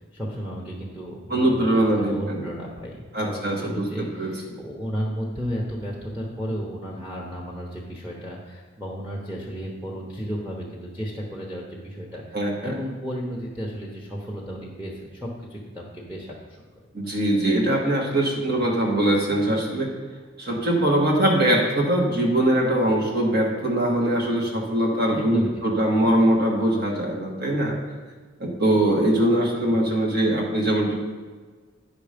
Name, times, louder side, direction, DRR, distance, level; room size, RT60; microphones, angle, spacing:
voice 1, 0.1-1.7 1.9-12.2 12.6-16.3 25.1-25.7, equal, 10° right, -3 dB, 1.0 m, -33 dB
voice 2, 1.3-2.4 3.1-3.9 4.2-4.3 12.3-12.7 16.9-19.9 20.4-27.8 28.4-31.0, right 1 dB, 50° right, -1 dB, 1.6 m, -22 dB
10.0 x 5.5 x 5.1 m, 1.4 s
head